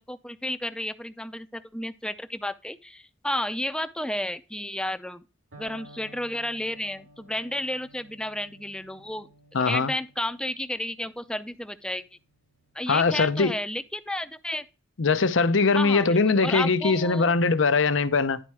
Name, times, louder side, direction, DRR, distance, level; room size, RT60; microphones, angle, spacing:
voice 1, 0.0-5.2 5.6-9.3 9.7-12.0 12.7-14.6 15.7-17.3, left 1 dB, 5° left, 0.5 m, -32 dB
Electric guitar, 5.5-13.4, right 1 dB, 85° right, 2.7 m, -54 dB
voice 2, 9.5-9.9 12.9-13.5 15.0-18.4, left 4 dB, 80° left, 0.7 m, -21 dB
11.0 x 4.3 x 4.7 m
head